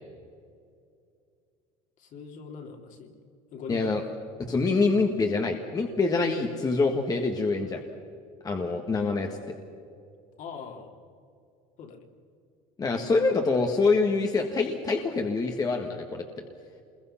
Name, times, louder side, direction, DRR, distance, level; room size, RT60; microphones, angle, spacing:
voice 1, 2.0-3.1 3.5-4.1 10.4-11.0 11.8-12.0, left 5 dB, 50° left, 3 dB, 3.0 m, -42 dB
voice 2, 3.7-4.0 4.5-7.8 8.4-9.4 12.8-16.4, left 3 dB, 20° left, 3 dB, 1.6 m, -25 dB
27.5 x 21.5 x 5.8 m, 2.4 s
cardioid pair, 140°, 17 cm